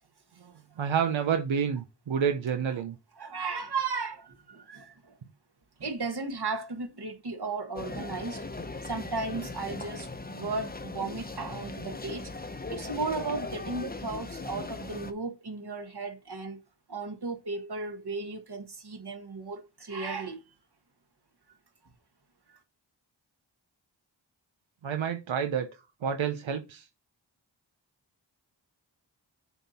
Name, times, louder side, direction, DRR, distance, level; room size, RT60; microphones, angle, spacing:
voice 1, 0.4-3.0 24.8-25.7 26.0-26.9, right 7 dB, 90° right, 0.7 m, -29 dB
voice 2, 3.2-5.2 5.8-8.4 8.8-12.3 12.7-16.6 16.9-20.4 22.5-22.6, right 4 dB, 60° right, 1.6 m, -35 dB
sound 1, 7.8-15.1, left 3 dB, 20° left, 0.8 m, -39 dB
6.9 x 4.3 x 4.2 m
cardioid pair, 45°, 45 cm